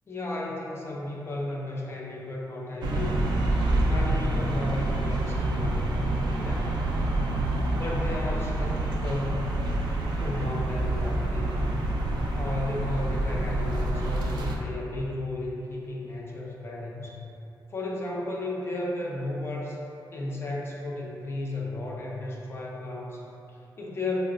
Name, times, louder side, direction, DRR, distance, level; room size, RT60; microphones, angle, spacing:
voice 1, 0.1-3.4 3.9-7.1 7.7-9.5 10.2-11.9 12.3-17.2 17.7-19.8 20.1-24.2, left 2 dB, 30° left, -3 dB, 0.4 m, -34 dB
sound 1, 2.8-14.6, right 1 dB, 75° right, 0.3 m, -27 dB
3.9 x 2.0 x 2.4 m, 2.9 s
wide cardioid pair, 150°, 8 cm